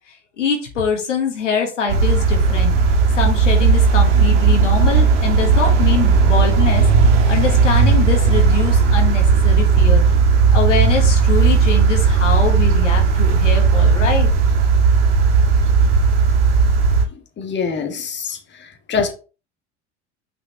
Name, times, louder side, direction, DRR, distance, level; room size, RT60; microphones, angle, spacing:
voice 1, 0.1-2.8 3.1-6.9 7.3-10.0 10.5-14.3, left 5 dB, 90° left, 1.7 m, -23 dB
sound 1, 1.9-17.0, right 5 dB, 70° right, 2.0 m, -15 dB
voice 2, 17.4-18.4 18.9-19.1, left 5 dB, 30° left, 1.5 m, -23 dB
5.7 x 5.2 x 3.1 m
hypercardioid pair, 85°, 36 cm